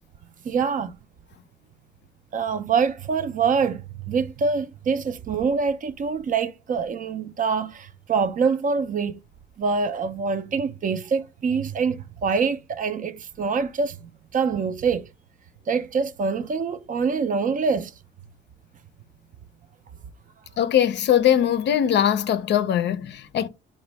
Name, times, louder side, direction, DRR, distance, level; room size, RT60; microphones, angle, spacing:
voice 1, 0.4-0.9 2.3-9.2 9.6-15.0 15.7-17.9, right 5 dB, 40° right, 0.4 m, -25 dB
voice 2, 20.6-23.5, left 10 dB, 60° left, 0.5 m, -21 dB
4.0 x 2.1 x 3.3 m
cardioid pair, 90°, 20 cm